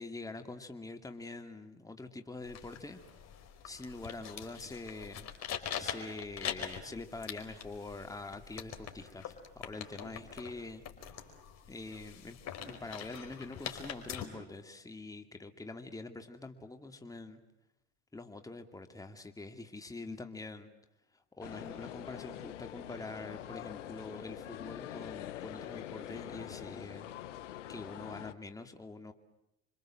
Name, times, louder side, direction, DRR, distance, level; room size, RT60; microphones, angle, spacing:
voice 1, 0.0-3.0 3.6-5.3 5.8-10.8 11.7-12.4 12.6-17.4 18.1-20.7 21.4-27.1 27.7-29.1, left 2 dB, 10° left, 6 dB, 2.5 m, -45 dB
sound 1, 2.4-14.2, left 9 dB, 45° left, 4.8 m, -43 dB
sound 2, 21.4-28.3, left 12 dB, 90° left, 1.2 m, -44 dB
29.0 x 25.0 x 7.7 m, 0.89 s
hypercardioid pair, 90°, 35 cm